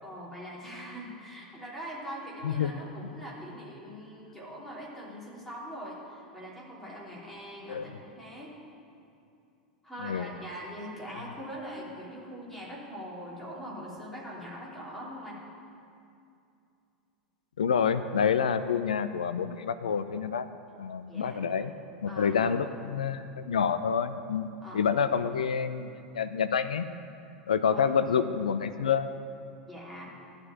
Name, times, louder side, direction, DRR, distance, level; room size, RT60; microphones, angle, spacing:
voice 1, 0.0-8.5 9.8-15.4 21.1-21.4 22.1-22.6 24.6-25.2 27.7-27.8 29.7-30.1, equal, 5° left, -6 dB, 3.3 m, -42 dB
voice 2, 17.6-20.5 20.8-21.7 22.0-24.5 24.7-26.9 27.5-29.1, left 7 dB, 70° left, 12 dB, 0.4 m, -28 dB
12.0 x 5.2 x 8.8 m, 2.6 s
figure-of-eight pair, 85°, 4 cm